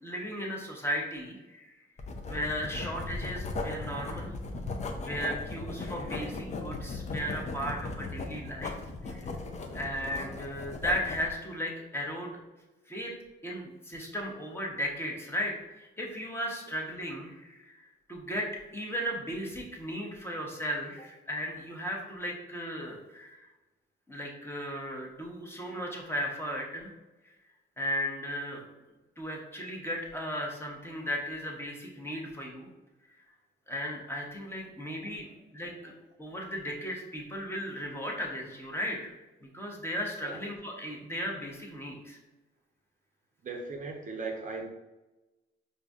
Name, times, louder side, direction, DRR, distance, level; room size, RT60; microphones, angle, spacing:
voice 1, 0.0-1.7 2.3-4.3 5.0-8.8 9.0-9.3 9.7-12.4 12.9-13.1 13.4-17.8 18.1-23.5 24.1-26.9 27.8-28.6 29.2-32.7 33.7-35.3 35.5-35.9 36.2-39.1 39.5-42.2, equal, 10° left, -1 dB, 0.9 m, -36 dB
Writing, 2.0-11.3, left 3 dB, 35° left, 0.5 m, -37 dB
voice 2, 9.5-9.9 40.2-40.4 43.4-44.7, right 3 dB, 40° right, 1 dB, 0.6 m, -39 dB
4.7 x 2.6 x 2.3 m, 1.1 s
cardioid pair, 90°, 20 cm